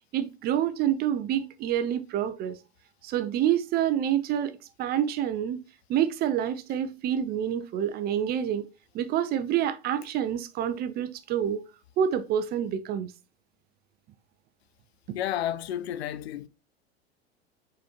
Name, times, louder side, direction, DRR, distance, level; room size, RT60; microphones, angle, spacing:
voice 1, 0.1-2.6 3.0-4.5 4.8-5.6 5.9-8.7 8.9-11.6 12.0-13.1, right 10 dB, 30° right, 0.4 m, -27 dB
voice 2, 15.1-16.5, left 11 dB, 70° left, 0.5 m, -31 dB
4.8 x 3.9 x 2.8 m
figure-of-eight pair, 80°, 33 cm